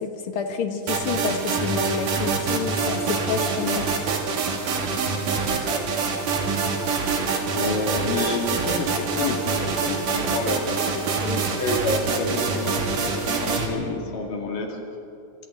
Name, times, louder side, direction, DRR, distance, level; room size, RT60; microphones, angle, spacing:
voice 1, 0.0-3.9 11.2-11.6, left 5 dB, 55° left, 5 dB, 1.6 m, -29 dB
sound 1, 0.9-13.7, right 4 dB, 70° right, 3.6 m, -25 dB
voice 2, 7.3-10.8 11.5-14.8, left 3 dB, 75° left, 1 dB, 3.8 m, -29 dB
27.5 x 25.5 x 3.7 m, 2.6 s
omnidirectional pair, 3.9 m